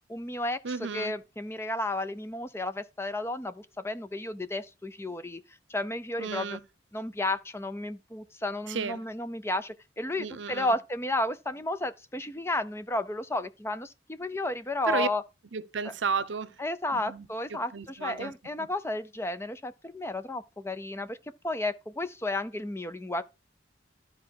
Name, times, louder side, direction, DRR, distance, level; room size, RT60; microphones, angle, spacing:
voice 1, 0.1-0.6 0.9-5.4 5.7-6.6 6.9-15.2 16.6-21.2 21.4-23.2, left 2 dB, 15° left, 0.6 m, -32 dB
voice 2, 0.6-1.1 6.2-6.6 8.7-9.0 10.2-10.8 14.9-15.1 15.5-16.6 16.9-18.3 18.6-18.7, right 5 dB, 85° right, 0.7 m, -33 dB
12.0 x 4.7 x 4.5 m
head